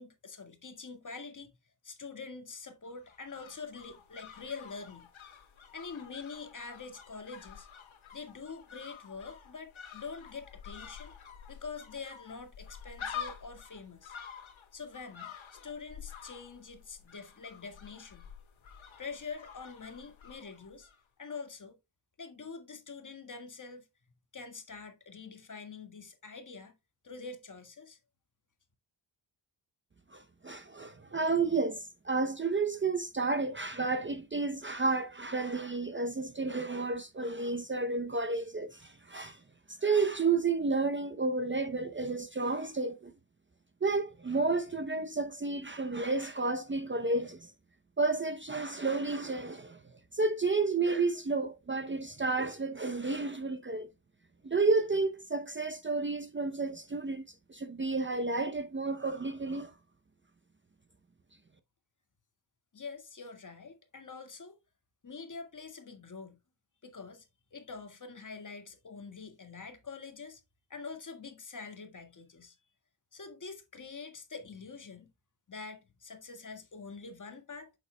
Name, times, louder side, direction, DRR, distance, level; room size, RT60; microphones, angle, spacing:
voice 1, 0.0-1.5 1.8-5.1 5.7-7.7 8.1-11.1 11.5-14.2 14.7-18.3 19.0-20.9 21.2-21.8 22.2-23.9 24.3-26.8 27.0-28.0 62.7-64.6 65.0-66.4 66.8-70.4 70.7-72.6 73.1-75.1 75.5-77.7, left 4 dB, 40° left, 1.8 m, -45 dB
sound 1, 2.8-21.0 21.3-21.4, left 7 dB, 85° left, 1.9 m, -48 dB
voice 2, 30.1-39.4 39.7-43.1 43.8-47.5 48.0-49.8 50.1-53.9 54.4-57.2 57.5-59.7, right 3 dB, 25° right, 0.7 m, -31 dB
8.4 x 7.3 x 2.2 m
cardioid pair, 85°, 47 cm